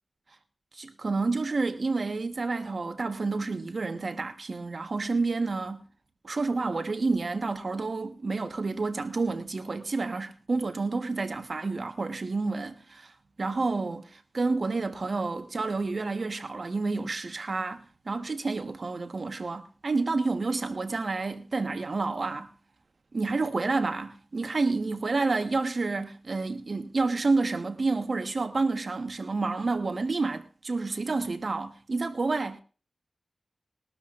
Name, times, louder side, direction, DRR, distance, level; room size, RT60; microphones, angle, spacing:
voice 1, 0.7-5.8 6.2-22.5 23.1-32.6, right 3 dB, 55° right, 1.3 m, -29 dB
21.0 x 12.5 x 2.5 m
wide cardioid pair, 85°, 0 cm